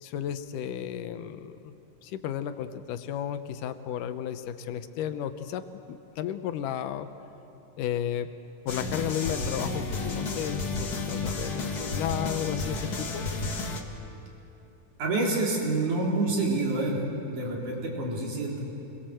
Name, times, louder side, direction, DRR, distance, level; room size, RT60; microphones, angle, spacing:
voice 1, 0.0-1.7 2.0-7.1 7.8-8.3 8.7-13.2, left 10 dB, 75° left, 10 dB, 2.4 m, -33 dB
sound 1, 8.7-13.8, left 3 dB, 40° left, 1.5 m, -32 dB
voice 2, 15.0-18.6, right 2 dB, 65° right, -2 dB, 5.5 m, -28 dB
27.5 x 22.0 x 7.8 m, 2.9 s
omnidirectional pair, 3.8 m